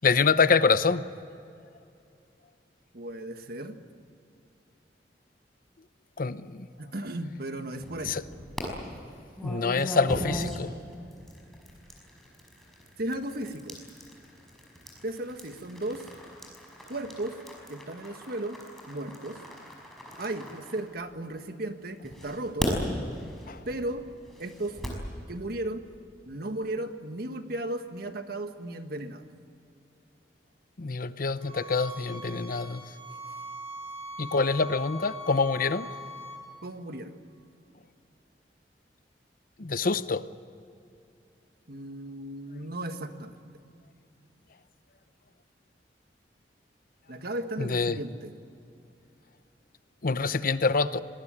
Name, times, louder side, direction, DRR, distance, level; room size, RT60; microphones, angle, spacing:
voice 1, 0.0-1.0 6.2-6.7 8.1-8.2 9.4-10.7 23.5-23.6 30.8-32.8 34.2-35.9 39.6-40.3 47.6-48.0 50.0-51.0, left 4 dB, 55° left, 13 dB, 0.8 m, -26 dB
voice 2, 2.9-3.8 6.8-8.2 13.0-13.8 15.0-16.1 16.9-17.4 17.7-18.6 18.9-19.4 20.2-22.7 23.7-24.1 24.4-24.8 25.3-25.8 26.3-29.2 36.6-37.2 41.7-43.4 47.1-48.3, right 1 dB, 60° right, 7 dB, 1.6 m, -35 dB
sound 1, 7.7-8.6 9.4-21.4 22.0-25.1, equal, ahead, 5.6 m, -39 dB
sound 2, 31.4-36.4, equal, 35° right, 5.2 m, -41 dB
25.5 x 19.0 x 8.8 m, 2.6 s
head